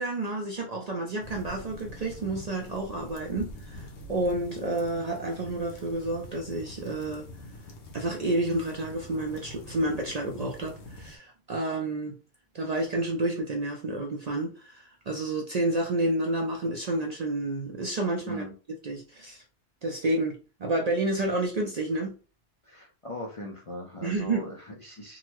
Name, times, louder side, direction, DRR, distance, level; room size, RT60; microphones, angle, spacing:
voice 1, 0.0-7.3 7.9-12.2 12.5-18.4 18.8-19.4 19.8-22.1 24.0-24.5, right 2 dB, 50° right, 0.5 m, -30 dB
sound 1, 1.2-11.2, left 1 dB, 85° left, 1.0 m, -45 dB
voice 2, 22.6-25.2, left 1 dB, 40° left, 0.5 m, -39 dB
3.7 x 2.0 x 3.0 m
omnidirectional pair, 1.1 m